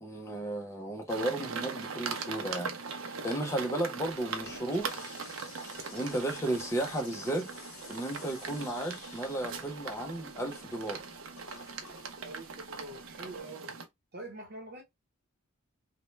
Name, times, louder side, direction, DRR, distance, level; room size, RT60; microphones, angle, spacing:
voice 1, 0.0-5.1 5.9-7.5 7.9-11.0, right 1 dB, 15° left, 0.6 m, -34 dB
sound 1, 1.1-13.9, right 5 dB, 65° right, 0.5 m, -40 dB
Toilet flush, 4.3-13.4, left 5 dB, 70° left, 0.8 m, -53 dB
voice 2, 12.2-13.7 14.1-14.8, right 2 dB, 45° right, 0.8 m, -45 dB
2.1 x 2.0 x 3.1 m
head